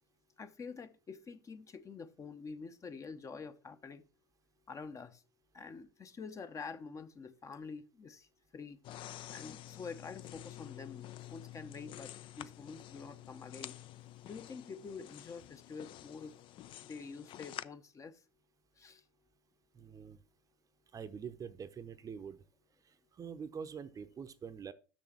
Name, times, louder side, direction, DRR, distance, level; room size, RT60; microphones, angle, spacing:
voice 1, 0.4-4.0 4.7-5.2 5.5-8.3 8.5-8.8 9.3-13.8 14.2-16.3 16.8-18.2 18.8-19.0, left 5 dB, 25° left, 0.8 m, -47 dB
sound 1, 8.8-17.6, left 13 dB, 45° left, 0.5 m, -49 dB
voice 2, 19.7-20.2 20.9-22.4 22.9-24.7, right 6 dB, 30° right, 0.8 m, -45 dB
6.5 x 6.3 x 5.9 m
hypercardioid pair, 85°, 12 cm